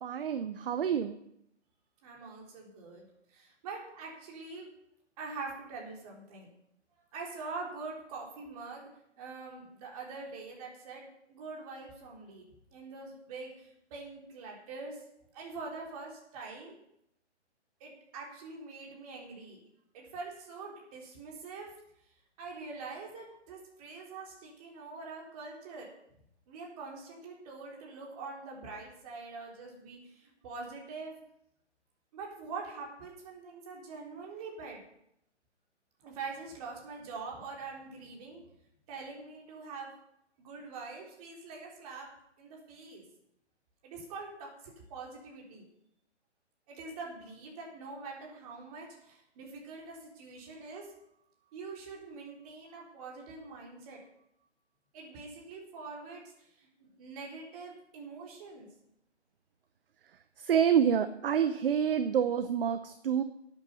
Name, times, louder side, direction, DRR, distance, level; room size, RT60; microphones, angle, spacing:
voice 1, 0.0-1.2 60.4-63.2, right 8 dB, 50° right, 11 dB, 0.8 m, -28 dB
voice 2, 2.0-3.1 3.3-4.7 5.2-6.5 7.1-8.9 9.2-12.5 12.7-15.0 15.3-16.8 17.8-19.6 19.9-21.7 22.4-25.9 26.5-31.1 32.1-34.8 36.0-38.4 38.9-39.9 40.4-42.1 42.4-43.0 43.8-45.7 46.7-50.9 51.5-54.0 54.9-56.3 56.6-56.7 57.0-58.7, right 4 dB, 30° right, -2 dB, 3.7 m, -44 dB
12.5 x 8.7 x 5.5 m, 0.78 s
figure-of-eight pair, 140°, 35 cm